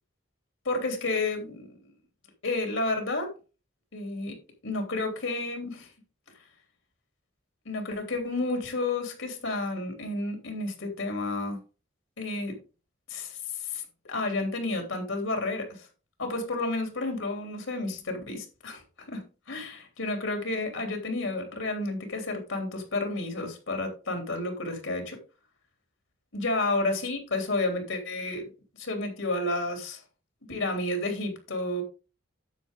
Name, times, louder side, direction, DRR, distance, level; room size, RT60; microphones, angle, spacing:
voice 1, 0.6-1.7 2.4-3.3 3.9-4.3 4.6-5.9 7.6-11.6 12.2-12.6 13.1-15.9 16.2-18.8 19.1-19.2 19.5-25.2 26.3-28.5 28.8-30.0 30.5-31.8, left 2 dB, 90° left, 3.1 m, -31 dB
9.7 x 7.3 x 3.7 m
head